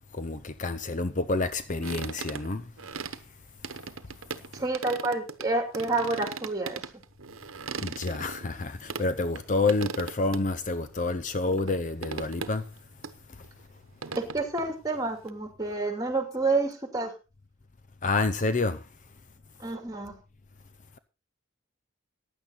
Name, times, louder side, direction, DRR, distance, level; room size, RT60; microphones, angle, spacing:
voice 1, 0.1-2.7 7.8-12.7 13.3-13.5 18.0-18.9, left 3 dB, 40° left, 0.7 m, -28 dB
sound 1, 1.8-3.2 3.6-5.5 5.7-9.0 9.4-9.5 9.7-10.4 10.8-10.9 11.5-11.8 12.0-12.8 13.0-13.1 13.4-15.3, right 5 dB, 85° right, 1.0 m, -38 dB
voice 2, 4.5-6.8 14.2-17.1 19.6-20.2, right 3 dB, 20° right, 2.7 m, -29 dB
15.5 x 10.5 x 4.0 m
head